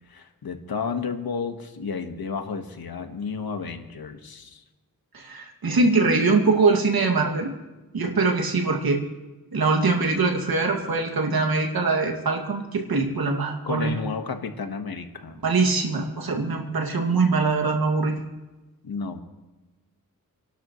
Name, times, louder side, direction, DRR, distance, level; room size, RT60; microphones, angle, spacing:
voice 1, 0.1-4.6 13.6-15.4 18.8-19.2, left 5 dB, 85° left, 6 dB, 1.6 m, -32 dB
voice 2, 5.1-7.5 7.9-9.0 9.5-14.0 15.4-18.1, right 3 dB, 85° right, 1 dB, 2.4 m, -23 dB
29.0 x 12.0 x 3.2 m, 1.1 s
cardioid pair, 65°, 36 cm